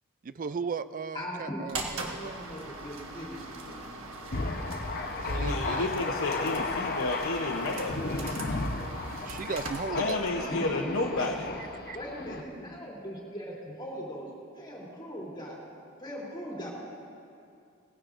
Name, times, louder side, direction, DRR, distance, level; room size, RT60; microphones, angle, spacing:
voice 1, 0.2-2.4 5.3-5.9 8.5-8.6 9.2-10.5 11.9-12.0, right 5 dB, 40° right, 13 dB, 0.4 m, -36 dB
voice 2, 1.1-3.9 8.4-8.5 8.8-8.9 9.9-11.2 11.9-14.3 14.5-15.6 16.0-16.7, equal, 25° left, -5 dB, 3.3 m, -40 dB
sound 1, 1.7-10.4, right 3 dB, 70° right, 1.6 m, -41 dB
Thunder, 4.3-12.4, left 3 dB, 50° left, 0.9 m, -34 dB
voice 3, 5.3-8.0 10.0-11.3, left 2 dB, 75° left, 1 dB, 0.9 m, -31 dB
20.0 x 16.0 x 2.6 m, 2.5 s
head